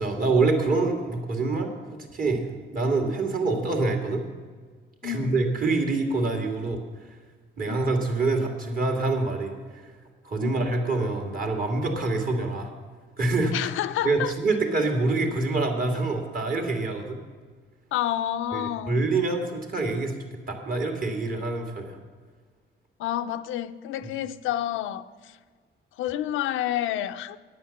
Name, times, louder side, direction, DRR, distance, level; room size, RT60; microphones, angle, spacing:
voice 1, 0.0-2.5 2.7-4.2 5.0-6.8 7.6-9.8 10.2-12.7 13.2-13.7 14.0-17.2 18.5-20.2 20.5-22.0, right 3 dB, 45° right, 2.2 m, -26 dB
voice 2, 5.0-5.5 7.7-7.9 10.4-10.7 13.5-14.3 17.9-19.0 23.0-25.4 26.0-27.4, left 12 dB, 85° left, 0.5 m, -29 dB
9.5 x 8.8 x 7.1 m
cardioid pair, 90°, 20 cm